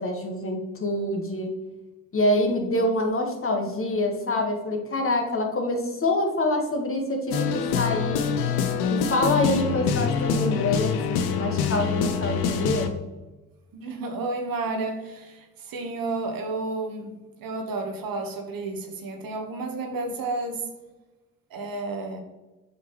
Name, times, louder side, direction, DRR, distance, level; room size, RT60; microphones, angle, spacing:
voice 1, 0.0-1.5 2.1-8.3 8.9-12.9, left 1 dB, 35° left, 2 dB, 1.4 m, -26 dB
sound 1, 7.3-12.9, left 6 dB, 70° left, 0.8 m, -25 dB
voice 2, 13.7-20.6 21.5-22.2, right 3 dB, 60° right, 4 dB, 1.3 m, -31 dB
7.7 x 5.2 x 3.0 m, 1.1 s
hypercardioid pair, 45°, 39 cm